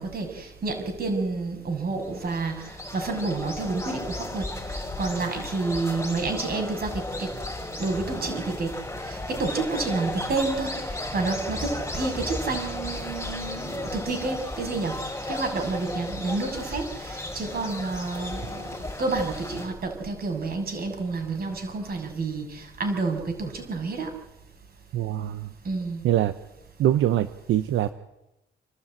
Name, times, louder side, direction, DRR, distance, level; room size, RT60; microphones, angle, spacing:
voice 1, 0.0-7.3 7.8-8.7 9.0-18.6 19.0-24.1 25.6-26.0, right 3 dB, 50° right, 4 dB, 6.7 m, -29 dB
sound 1, 2.0-19.7, left 1 dB, 15° left, 5.5 m, -34 dB
voice 2, 24.9-25.5 26.0-26.3 26.8-27.9, right 12 dB, 80° right, 12 dB, 0.9 m, -23 dB
28.5 x 12.5 x 9.0 m, 0.93 s
cardioid pair, 90°, 20 cm